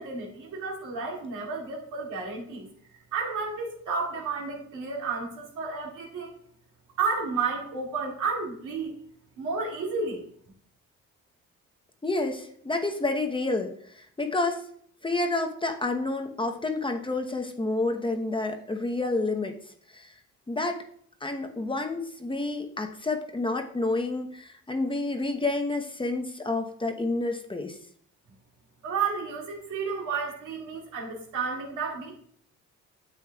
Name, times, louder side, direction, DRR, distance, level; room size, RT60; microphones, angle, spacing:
voice 1, 0.0-2.7 3.1-6.3 7.0-9.0 9.4-10.2 28.8-32.2, right 4 dB, 85° right, -2 dB, 2.3 m, -31 dB
voice 2, 12.0-14.6 15.0-19.5 19.9-20.1 20.5-20.8 21.2-27.8, left 2 dB, 15° left, 4 dB, 0.9 m, -29 dB
9.5 x 7.8 x 2.3 m, 0.62 s
cardioid pair, 90°, 30 cm